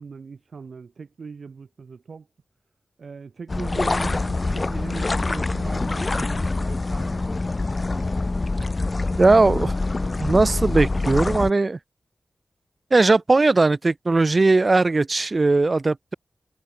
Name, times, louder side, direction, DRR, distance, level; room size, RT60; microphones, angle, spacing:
voice 1, 0.0-2.3 3.0-7.2, right 5 dB, 75° right, 6.2 m, -39 dB
sound 1, 3.5-11.5, left 3 dB, 40° left, 1.8 m, -25 dB
voice 2, 9.2-9.7 10.2-11.8 12.9-16.1, right 3 dB, 40° right, 0.7 m, -18 dB
wide cardioid pair, 65°, 0 cm